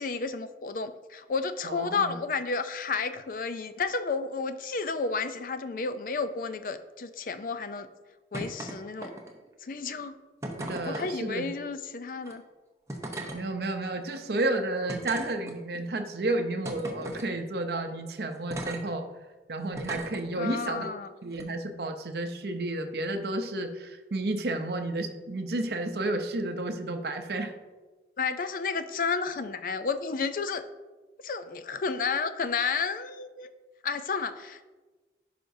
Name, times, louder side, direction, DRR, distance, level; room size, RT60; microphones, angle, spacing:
voice 1, 0.0-7.9 8.3-9.1 9.6-10.1 10.9-12.4 20.4-21.1 28.2-30.6 31.2-33.5 33.8-34.6, left 5 dB, 50° left, 11 dB, 0.4 m, -31 dB
voice 2, 1.6-2.2 10.6-11.5 13.3-19.1 19.5-20.9 21.2-27.5, right 2 dB, 65° right, 5 dB, 0.6 m, -31 dB
sound 1, 8.3-8.7 9.0-9.5 10.4-11.1 12.2-12.3 12.9-13.4 14.1-14.2 14.9-15.8 16.6-17.3 18.5-18.8 19.7-20.2 21.3-21.4, right 1 dB, 15° right, 0.8 m, -37 dB
11.0 x 5.1 x 2.7 m, 1.3 s
head